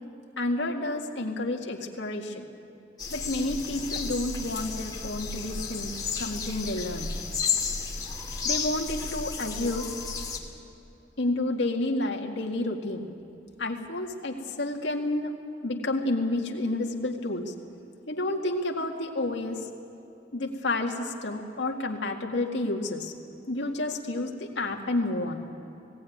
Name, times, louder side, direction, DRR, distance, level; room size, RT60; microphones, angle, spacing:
voice 1, 0.4-2.5 3.1-7.1 8.4-9.9 11.2-13.1 13.6-15.3 15.6-17.5 18.1-19.7 20.3-23.1 23.5-25.4, left 2 dB, 75° left, 1 dB, 2.0 m, -30 dB
sound 1, 3.0-10.4, left 5 dB, 20° left, 2.5 m, -32 dB
19.0 x 17.5 x 9.4 m, 3.0 s
head